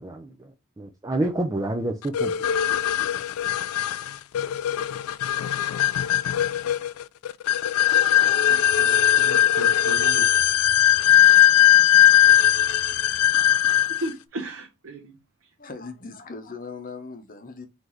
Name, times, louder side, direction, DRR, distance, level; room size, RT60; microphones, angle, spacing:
voice 1, 0.0-2.3, right 1 dB, 15° right, 0.4 m, -28 dB
sound 1, 2.1-14.1, left 11 dB, 80° left, 0.3 m, -19 dB
voice 2, 8.1-10.3 13.9-15.5, right 1 dB, 65° right, 0.8 m, -37 dB
voice 3, 15.6-17.7, left 4 dB, 40° left, 0.8 m, -39 dB
3.9 x 3.2 x 3.1 m
head